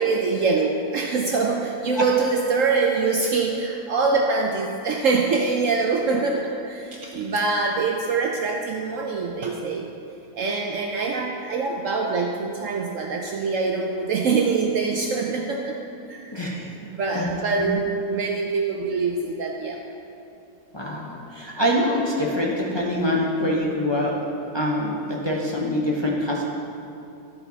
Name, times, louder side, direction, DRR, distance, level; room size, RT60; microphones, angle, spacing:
voice 1, 0.0-9.9 10.3-15.8 16.1-16.4 16.8-19.8, right 4 dB, 70° right, 1 dB, 0.7 m, -24 dB
voice 2, 16.3-16.6 17.1-17.7 20.7-24.1 24.5-26.4, left 1 dB, 35° left, -4 dB, 0.4 m, -25 dB
12.5 x 4.9 x 3.9 m, 2.7 s
omnidirectional pair, 1.9 m